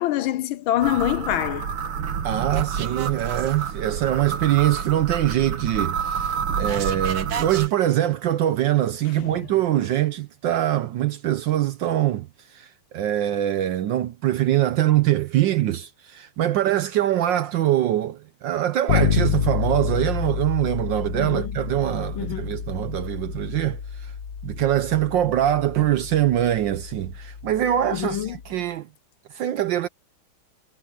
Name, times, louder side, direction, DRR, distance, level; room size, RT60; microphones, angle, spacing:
voice 1, 0.0-1.7 9.2-9.4 21.2-21.4 22.2-22.5 27.9-28.3, left 13 dB, 75° left, 1.4 m, -25 dB
sound 1, 0.8-7.7, right 7 dB, 85° right, 2.3 m, -28 dB
voice 2, 2.2-24.1 24.4-28.9 29.3-29.9, right 12 dB, 70° right, 1.3 m, -23 dB
Bass guitar, 18.9-28.6, left 8 dB, 50° left, 1.3 m, -29 dB
omnidirectional pair, 2.3 m